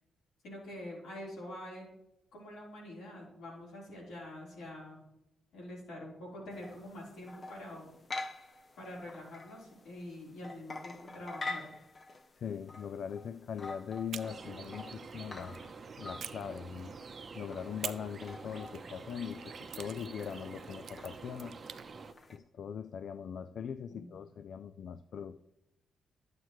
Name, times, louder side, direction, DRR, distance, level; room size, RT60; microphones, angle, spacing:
voice 1, 0.4-1.8 2.3-5.0 5.5-7.9 8.8-11.7 23.9-24.2, left 1 dB, 90° left, -4 dB, 3.9 m, -46 dB
sound 1, 6.5-22.4, left 3 dB, 35° left, 0.8 m, -47 dB
voice 2, 12.4-15.6 16.0-17.0 17.3-21.5 22.3-25.4, left 7 dB, 65° left, 12 dB, 0.3 m, -41 dB
sound 2, 14.1-15.6 16.2-17.2 17.8-21.9, right 8 dB, 65° right, 0.4 m, -48 dB
sound 3, 14.2-22.1, right 4 dB, 40° right, 0.8 m, -48 dB
13.0 x 7.5 x 3.1 m, 0.87 s
cardioid pair, 105°, 0 cm